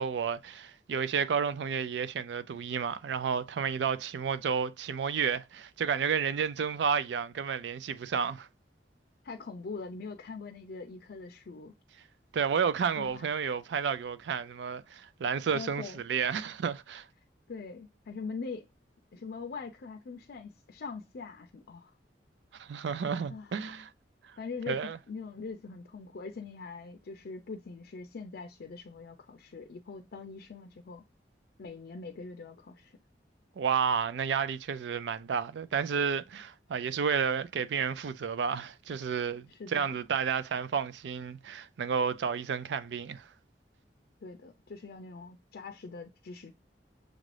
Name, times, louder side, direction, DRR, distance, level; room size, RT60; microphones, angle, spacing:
voice 1, 0.0-8.5 12.3-17.1 22.5-23.9 24.7-25.0 33.6-43.3, right 6 dB, 75° right, 0.4 m, -31 dB
voice 2, 9.2-11.7 13.0-13.3 15.5-16.0 17.5-18.7 19.1-21.9 23.3-23.5 24.4-31.0 31.6-33.0 39.5-39.9 44.2-46.5, left 4 dB, 60° left, 0.4 m, -42 dB
6.3 x 2.5 x 3.2 m
head